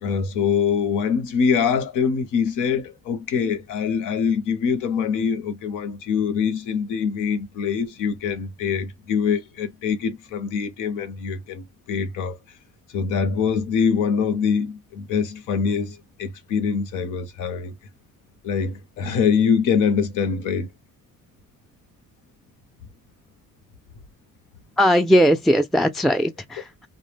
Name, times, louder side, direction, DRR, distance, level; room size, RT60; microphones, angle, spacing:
voice 1, 0.0-12.4 12.9-17.8 18.4-20.7, left 6 dB, 90° left, 0.7 m, -24 dB
voice 2, 24.8-26.9, equal, ahead, 0.4 m, -19 dB
2.1 x 2.0 x 3.2 m
cardioid pair, 90°, 30 cm